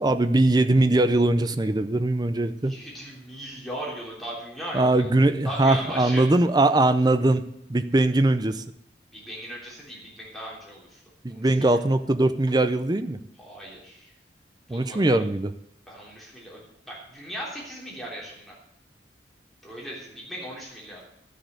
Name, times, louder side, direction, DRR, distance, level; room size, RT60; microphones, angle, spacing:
voice 1, 0.0-2.7 4.7-7.4 7.7-8.6 11.2-13.2 14.7-15.5, right 2 dB, 20° right, 10 dB, 0.5 m, -21 dB
voice 2, 2.6-5.1 5.4-6.2 9.1-11.0 11.3-11.5 13.4-14.1 14.7-15.2 15.9-18.5 19.6-21.0, equal, ahead, -5 dB, 3.1 m, -38 dB
12.5 x 6.4 x 8.0 m, 0.77 s
head